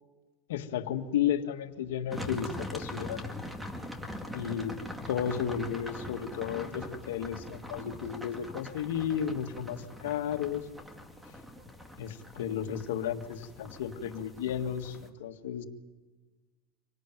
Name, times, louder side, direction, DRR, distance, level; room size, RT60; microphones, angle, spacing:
voice 1, 0.5-3.2 4.3-4.8 5.1-10.7 12.0-15.6, left 9 dB, 85° left, 7 dB, 1.7 m, -33 dB
sound 1, 2.1-15.1, left 1 dB, 5° right, 2.2 m, -42 dB
26.0 x 18.0 x 9.3 m, 1.3 s
supercardioid pair, 135°, 0 cm